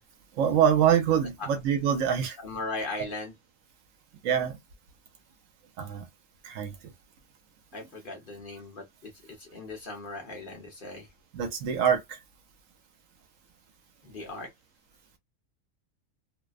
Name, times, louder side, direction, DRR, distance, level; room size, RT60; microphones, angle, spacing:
voice 1, 0.3-2.4 4.2-4.6 5.8-6.1 6.4-6.7 11.3-12.2, right 8 dB, 70° right, 1.0 m, -25 dB
voice 2, 2.4-3.3 7.7-11.1 14.0-14.5, left 2 dB, 45° left, 0.8 m, -38 dB
2.6 x 2.1 x 2.3 m
omnidirectional pair, 1.5 m